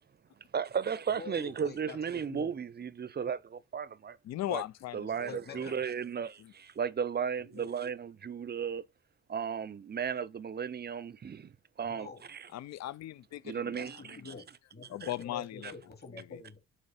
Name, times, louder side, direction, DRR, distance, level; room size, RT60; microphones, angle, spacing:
voice 1, 0.5-4.2 4.5-4.6 4.9-8.8 9.3-12.5 13.4-14.2 15.0-15.1, right 7 dB, 30° right, 0.6 m, -35 dB
voice 2, 1.1-2.5 5.3-5.9 7.4-7.7 11.9-12.2 13.7-16.6, left 4 dB, 30° left, 2.7 m, -47 dB
voice 3, 4.2-5.7 6.4-6.5 12.5-14.4 14.9-15.7 16.1-16.4, left 13 dB, 60° left, 0.5 m, -39 dB
7.8 x 3.1 x 5.2 m
hypercardioid pair, 55°, 31 cm